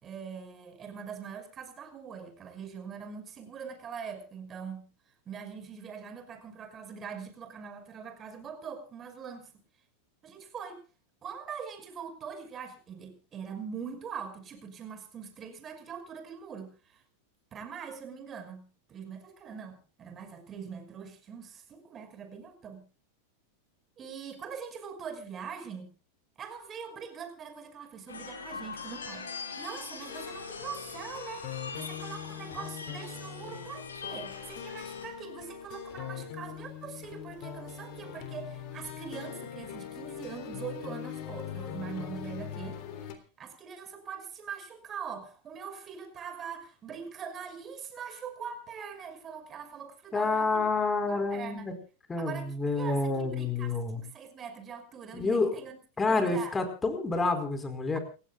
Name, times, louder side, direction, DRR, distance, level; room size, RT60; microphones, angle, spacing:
voice 1, 0.0-4.9 5.3-9.5 10.2-10.8 11.2-17.0 17.5-22.9 24.0-25.9 26.4-43.1 43.4-50.6 51.1-51.7 52.2-55.7 56.1-56.5, right 6 dB, 25° right, 7 dB, 5.8 m, -42 dB
sound 1, 28.1-35.1, left 5 dB, 70° left, 4.6 m, -42 dB
sound 2, 30.1-43.2, left 8 dB, 45° left, 3.6 m, -41 dB
voice 2, 50.1-51.7 52.1-54.0 55.1-55.6 56.0-58.0, left 3 dB, 15° left, 9 dB, 4.6 m, -28 dB
29.0 x 16.0 x 2.4 m, 0.36 s
figure-of-eight pair, 90°, 0 cm